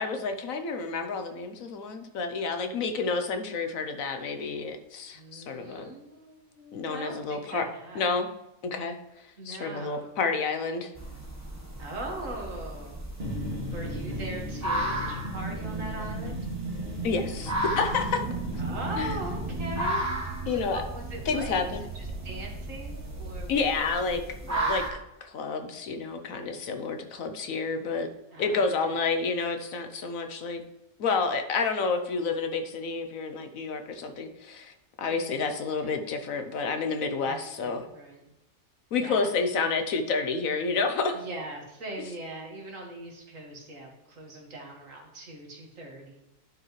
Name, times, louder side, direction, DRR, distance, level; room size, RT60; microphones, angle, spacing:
voice 1, 0.0-5.9 6.7-7.6 7.9-8.3 8.6-9.0 9.4-10.9 17.0-18.2 19.0-19.2 20.5-20.8 21.3-21.8 23.5-24.8 25.2-28.1 28.4-30.6 31.0-37.9 38.9-41.2, left 4 dB, 70° left, 7 dB, 1.2 m, -29 dB
voice 2, 5.1-8.1 9.4-10.1 11.8-13.1 13.7-16.4 18.6-24.0 24.5-24.8 28.3-29.0 35.1-35.5 35.8-36.2 37.2-38.2 39.0-39.3 41.1-46.2, right 1 dB, 60° right, 0 dB, 2.0 m, -41 dB
sound 1, 11.0-24.9, right 1 dB, 10° right, 1.0 m, -35 dB
sound 2, 13.2-20.0, right 1 dB, 40° right, 2.2 m, -35 dB
sound 3, 18.2-23.4, right 5 dB, 75° right, 1.2 m, -40 dB
11.0 x 5.0 x 3.2 m, 0.90 s
omnidirectional pair, 1.5 m